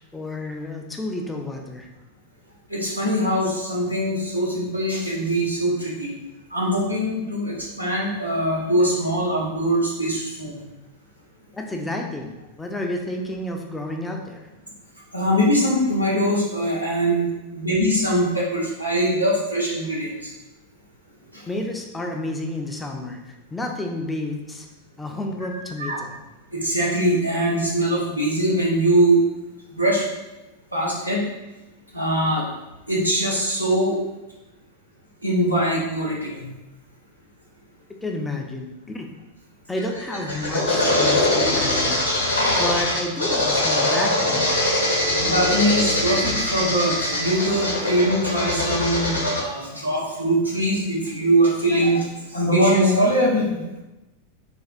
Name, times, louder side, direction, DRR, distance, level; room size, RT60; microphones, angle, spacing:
voice 1, 0.1-1.9 11.5-14.5 21.5-24.7 25.0-26.1 38.0-39.1 39.7-42.0 42.6-44.5, left 1 dB, 10° left, 1 dB, 0.4 m, -30 dB
voice 2, 2.7-6.1 6.5-10.6 15.1-17.3 17.5-20.3 21.3-21.5 25.8-26.0 26.5-29.2 29.7-30.0 30.7-31.2 31.9-32.5 32.9-34.0 35.2-36.5 45.2-53.6, right 1 dB, 90° right, -5 dB, 0.8 m, -22 dB
sound 1, 39.8-49.4, left 1 dB, 80° left, 0.7 m, -22 dB
4.2 x 2.1 x 2.5 m, 1.0 s
figure-of-eight pair, 90°, 0 cm